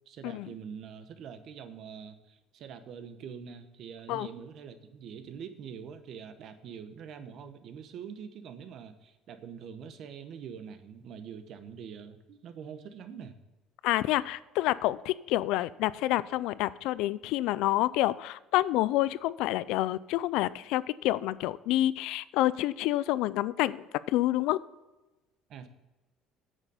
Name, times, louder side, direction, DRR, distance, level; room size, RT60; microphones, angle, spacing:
voice 1, 0.1-13.3 25.5-25.7, right 7 dB, 55° right, 10 dB, 1.0 m, -44 dB
voice 2, 13.8-24.6, left 15 dB, 75° left, 18 dB, 0.4 m, -28 dB
9.0 x 6.8 x 5.6 m, 1.1 s
cardioid pair, 140°, 0 cm